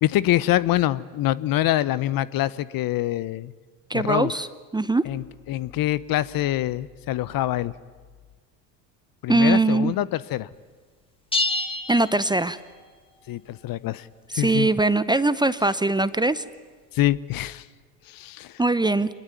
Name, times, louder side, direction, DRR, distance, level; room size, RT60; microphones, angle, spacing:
voice 1, 0.0-3.5 3.9-4.4 5.0-7.7 9.2-10.5 13.3-14.1 14.3-14.7 16.9-17.7 18.1-18.6, left 14 dB, 45° left, 19 dB, 0.8 m, -25 dB
voice 2, 3.9-4.5 4.7-5.0 9.3-9.9 11.9-12.6 14.3-16.4 18.6-19.1, right 2 dB, 10° right, 15 dB, 0.7 m, -21 dB
sound 1, 11.3-12.9, left 2 dB, 10° left, 2.5 m, -28 dB
24.0 x 21.0 x 9.7 m, 1.4 s
hypercardioid pair, 75°, 48 cm